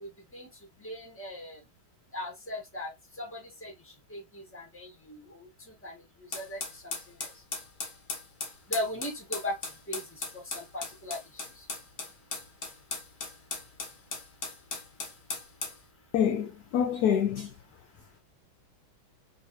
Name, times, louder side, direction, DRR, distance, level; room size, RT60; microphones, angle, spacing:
voice 1, 0.0-0.5 0.8-1.6 2.1-2.9 3.2-3.7 4.1-5.2 5.8-5.9 6.3-6.6 8.7-9.6 9.9-10.0 10.5-11.2, left 1 dB, 5° left, 1.2 m, -37 dB
sound 1, 6.3-15.8, left 4 dB, 50° left, 1.5 m, -38 dB
voice 2, 16.1-17.5, left 8 dB, 75° left, 0.9 m, -26 dB
3.9 x 3.2 x 3.0 m
omnidirectional pair, 2.2 m